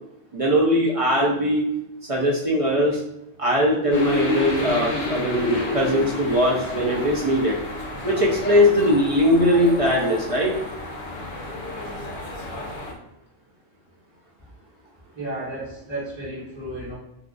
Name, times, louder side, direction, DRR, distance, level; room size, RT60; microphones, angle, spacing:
voice 1, 0.3-1.6 2.1-3.0 3.4-7.5 8.0-10.5, equal, 55° right, -2 dB, 0.4 m, -20 dB
sound 1, 3.9-12.9, left 2 dB, 55° left, 0.8 m, -30 dB
voice 2, 15.1-17.0, right 1 dB, 25° right, -9 dB, 1.3 m, -33 dB
2.5 x 2.3 x 3.7 m, 0.85 s
omnidirectional pair, 1.1 m